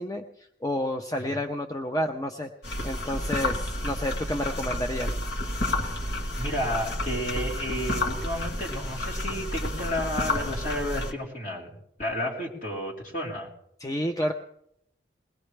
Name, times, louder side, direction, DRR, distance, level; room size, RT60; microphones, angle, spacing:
voice 1, 0.0-2.5 2.8-5.2 13.8-14.3, equal, 20° left, 4 dB, 0.7 m, -30 dB
sound 1, 2.6-11.1, left 1 dB, 70° left, 1.6 m, -30 dB
voice 2, 6.4-11.7 12.0-13.5, equal, 45° left, -3 dB, 3.8 m, -32 dB
22.0 x 18.5 x 3.4 m, 0.76 s
head